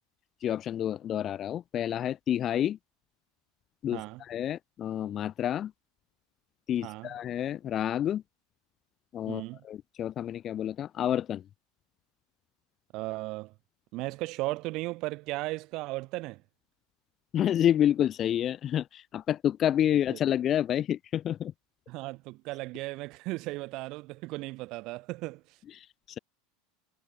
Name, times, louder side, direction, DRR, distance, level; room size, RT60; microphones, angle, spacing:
voice 1, 0.4-2.8 3.8-5.7 6.7-8.2 9.1-11.4 17.3-21.5 25.8-25.9, left 10 dB, 40° left, 0.4 m, -29 dB
voice 2, 3.9-4.2 6.8-7.1 9.3-9.6 12.9-13.5 13.9-16.4 20.1-20.2 21.9-25.6, right 21 dB, 55° right, 1.7 m, -36 dB
hypercardioid pair, 85°, 0 cm